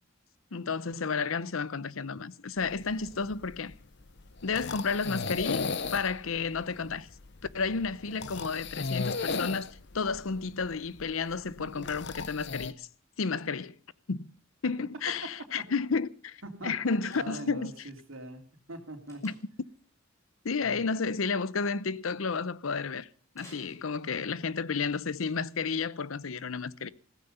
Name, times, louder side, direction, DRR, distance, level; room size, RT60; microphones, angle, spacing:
voice 1, 0.5-3.7 4.4-7.1 7.5-12.9 13.2-13.8 14.1-14.3 14.6-17.7 19.2-19.3 20.4-23.1 23.3-26.9, left 5 dB, 75° left, 0.7 m, -32 dB
sound 1, 2.6-12.7, left 4 dB, 55° left, 0.9 m, -37 dB
Slam, 17.0-17.8 19.1-19.6 23.3-24.4, equal, 15° left, 6.3 m, -55 dB
voice 2, 17.1-18.4 18.7-19.3 20.6-20.8, right 1 dB, 70° right, 3.3 m, -42 dB
16.5 x 14.5 x 5.5 m
head